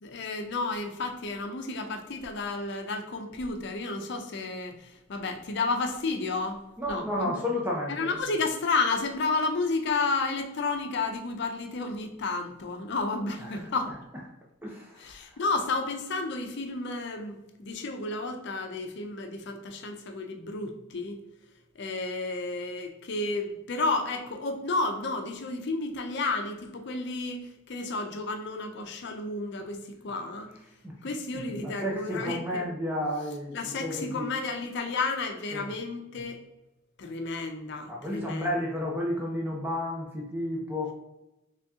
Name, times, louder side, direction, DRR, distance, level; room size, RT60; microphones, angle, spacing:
voice 1, 0.0-6.6 6.9-7.3 7.9-13.9 15.0-21.2 21.8-30.5 31.0-32.6 33.5-36.4 37.0-38.5, left 3 dB, 65° left, 5 dB, 0.6 m, -31 dB
voice 2, 6.8-8.2 13.4-14.3 14.6-15.4 30.8-30.9 31.6-34.3 35.5-35.7 37.9-40.9, left 1 dB, 10° right, -3 dB, 0.5 m, -32 dB
3.4 x 2.8 x 3.5 m, 0.96 s
head